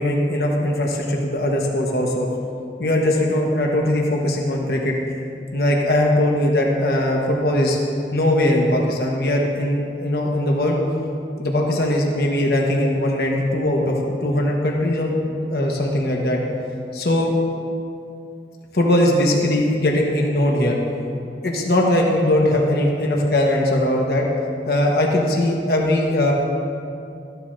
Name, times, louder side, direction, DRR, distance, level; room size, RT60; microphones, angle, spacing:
voice 1, 0.0-2.3 2.8-4.9 5.5-7.8 8.1-10.8 11.4-16.4 16.9-17.3 18.7-20.8 21.4-24.2 24.6-26.3, left 1 dB, 60° left, -1 dB, 1.2 m, -20 dB
14.0 x 11.0 x 2.6 m, 2.5 s
head